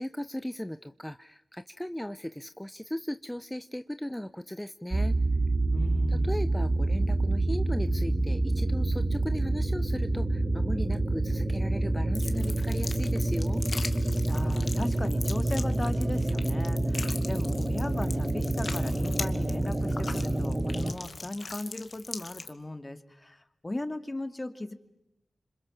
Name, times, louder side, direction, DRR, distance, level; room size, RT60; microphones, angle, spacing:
voice 1, 0.0-5.2 6.1-13.6, equal, 10° left, 11 dB, 0.9 m, -37 dB
sound 1, 4.9-20.9, right 2 dB, 40° right, 3.3 m, -27 dB
voice 2, 5.7-6.4 14.3-23.4 23.6-24.7, left 2 dB, 30° left, 9 dB, 2.5 m, -37 dB
sound 2, 12.1-22.5, left 3 dB, 60° left, 2.3 m, -41 dB
27.0 x 26.5 x 7.3 m, 0.88 s
cardioid pair, 45°, 0 cm